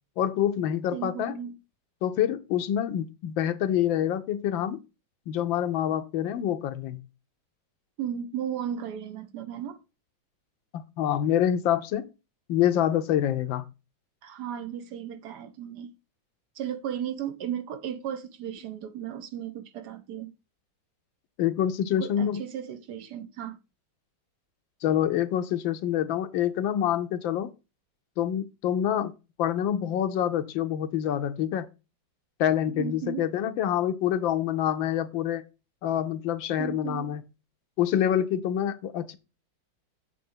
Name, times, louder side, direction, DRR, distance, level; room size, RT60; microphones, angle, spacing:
voice 1, 0.2-1.4 2.0-4.8 5.3-7.0 10.7-12.1 12.5-13.6 21.4-22.4 24.8-27.5 28.2-29.1 29.4-31.7 32.4-35.4 35.8-37.2 37.8-39.2, left 10 dB, 85° left, 1.4 m, -26 dB
voice 2, 0.9-1.6 8.0-9.8 14.2-15.9 16.5-20.3 22.0-23.6 32.7-33.2 36.6-37.2, right 9 dB, 70° right, 1.1 m, -35 dB
7.7 x 3.4 x 5.3 m
omnidirectional pair, 2.1 m